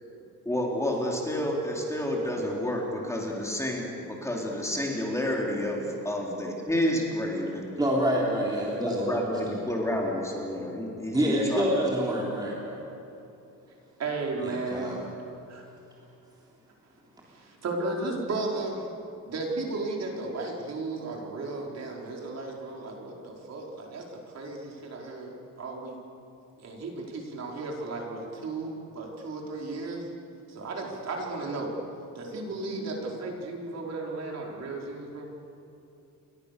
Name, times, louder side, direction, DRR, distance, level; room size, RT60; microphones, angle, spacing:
voice 1, 0.4-7.7 8.7-11.7, left 1 dB, 10° left, -2 dB, 4.0 m, -30 dB
voice 2, 7.8-9.2 9.5-9.6 11.1-12.8 14.4-15.0 32.7-32.8 33.2-33.3, equal, 10° right, -4 dB, 3.5 m, -27 dB
voice 3, 14.0-15.0 15.5-15.6 17.3-18.9 19.3-25.9 26.6-30.1 30.5-31.7 32.1-35.3, right 3 dB, 45° right, -1 dB, 5.0 m, -34 dB
29.5 x 24.5 x 6.9 m, 2.8 s
cardioid pair, 150°, 36 cm